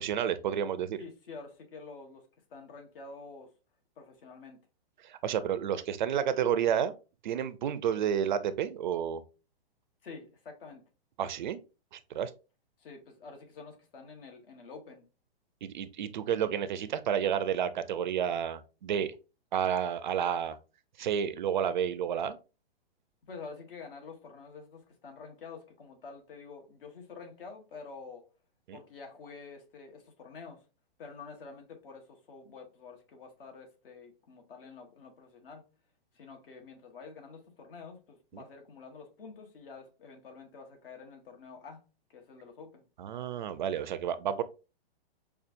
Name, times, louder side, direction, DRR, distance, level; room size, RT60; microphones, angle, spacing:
voice 1, 0.0-1.0 5.0-6.9 7.2-9.2 11.2-11.6 11.9-12.3 15.6-19.1 19.5-20.6 21.0-22.4 28.7-28.8 38.3-38.4 43.0-44.4, right 9 dB, 50° right, 0.4 m, -30 dB
voice 2, 1.0-3.5 4.0-4.6 10.0-10.8 12.8-15.0 23.3-28.3 28.7-30.6 31.0-35.6 36.1-41.8 42.1-42.8, left 4 dB, 65° left, 1.4 m, -48 dB
5.5 x 2.3 x 2.6 m
hypercardioid pair, 160°, 30 cm